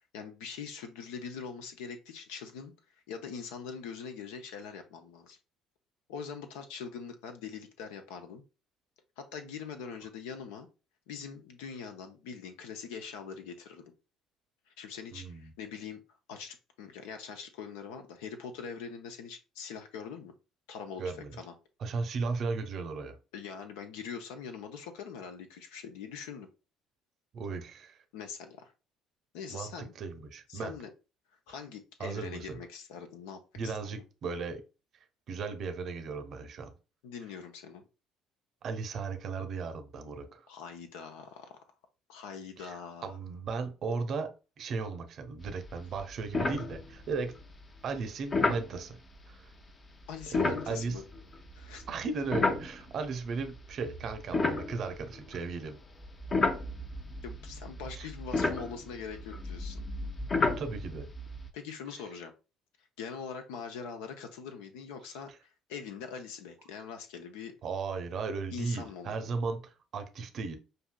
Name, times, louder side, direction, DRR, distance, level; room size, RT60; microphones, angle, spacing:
voice 1, 0.1-2.7 3.1-5.4 6.1-8.4 9.2-10.7 11.1-13.9 14.8-16.0 16.3-20.3 20.7-21.0 21.3-21.5 23.3-26.5 28.1-28.7 29.3-29.9 30.5-30.9 31.5-33.9 37.0-37.8 40.5-41.6 42.1-43.2 50.1-51.0 51.5-51.8 57.2-59.8 61.5-62.3 63.0-65.3 65.7-67.6 68.5-69.3, left 6 dB, 65° left, 0.5 m, -43 dB
voice 2, 15.1-15.5 21.0-21.3 21.8-23.2 27.3-28.0 29.5-30.8 31.5-31.6 32.0-32.6 33.6-34.6 35.3-36.7 38.6-40.5 42.6-47.3 47.8-49.0 49.3-49.5 50.3-51.0 51.9-55.8 58.0-58.1 60.6-61.1 67.6-70.6, right 4 dB, 45° right, 0.7 m, -36 dB
sound 1, 45.5-45.7 46.0-46.1 46.3-47.2 48.3-48.7 50.2-53.1 53.7-55.5 56.0-61.5, left 3 dB, 30° left, 0.7 m, -32 dB
6.5 x 2.6 x 2.2 m
figure-of-eight pair, 55°, 0 cm